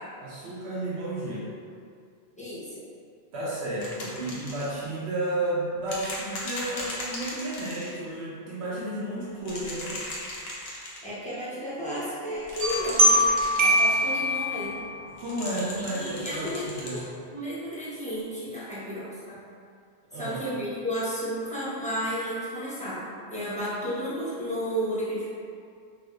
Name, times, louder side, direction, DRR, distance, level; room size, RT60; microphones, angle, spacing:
voice 1, 0.2-1.5 3.3-10.0 15.2-17.1 20.1-20.4, right 1 dB, 90° right, -7 dB, 0.9 m, -32 dB
voice 2, 2.4-2.8 11.0-13.2 13.6-14.8 15.8-17.0 17.3-19.4 20.1-25.2, equal, 10° left, -11 dB, 0.7 m, -33 dB
sound 1, 3.8-4.8 5.9-8.0 9.4-11.0 12.4-14.1 15.2-17.1 18.2-18.3, left 1 dB, 75° left, 0.9 m, -37 dB
sound 2, 12.6-15.0, equal, 60° right, 0.7 m, -22 dB
4.5 x 2.1 x 2.3 m, 2.3 s
omnidirectional pair, 1.1 m